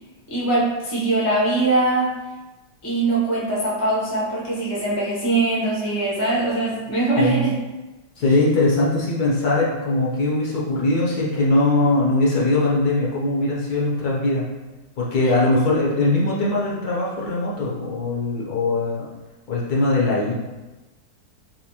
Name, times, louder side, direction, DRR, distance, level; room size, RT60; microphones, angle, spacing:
voice 1, 0.3-2.1 2.8-7.6, right 2 dB, 15° left, -7 dB, 0.6 m, -22 dB
voice 2, 8.2-14.4 15.0-19.1 19.5-20.3, left 2 dB, 65° left, -5 dB, 1.2 m, -21 dB
4.2 x 2.5 x 2.8 m, 1.1 s
omnidirectional pair, 1.9 m